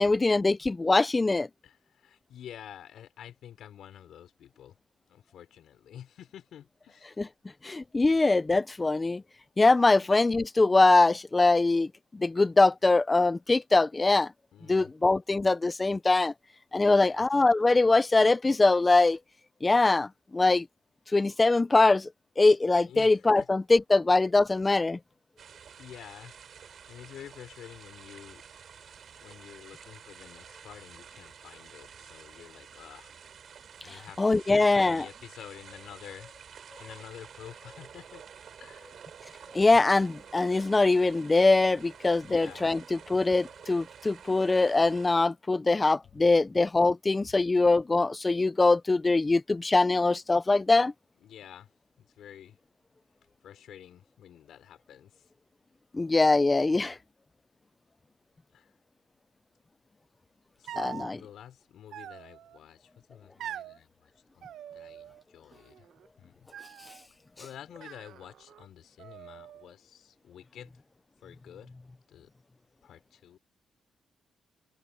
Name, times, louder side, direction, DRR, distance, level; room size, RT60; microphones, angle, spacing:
voice 1, 0.0-1.5 7.2-7.3 7.6-9.2 9.6-14.3 14.7-16.3 16.7-19.2 19.6-20.7 21.1-22.1 22.4-25.0 34.2-35.0 39.5-50.9 55.9-57.0 60.8-61.2, left 3 dB, 25° left, 0.7 m, -23 dB
voice 2, 1.6-4.8 5.1-7.1 14.5-14.9 16.8-17.3 22.9-23.5 25.8-26.3 26.9-28.4 28.8-28.9 29.2-33.1 33.8-36.3 36.8-38.2 38.6-38.9 42.2-42.7 51.2-51.7 52.0-52.6 53.4-55.2 58.5-58.7 60.6-65.8 66.2-66.3 67.4-70.7 71.2-71.7 72.1-72.3 72.8-73.4, left 10 dB, 80° left, 4.9 m, -49 dB
sound 1, 25.4-45.2, right 7 dB, 60° right, 7.6 m, -50 dB
sound 2, 60.7-61.1 61.9-62.6 63.4-63.8 64.4-65.2 65.5-66.1 66.5-67.1 67.8-68.7 69.0-69.7, right 10 dB, 85° right, 1.2 m, -44 dB
cardioid pair, 85°, 0 cm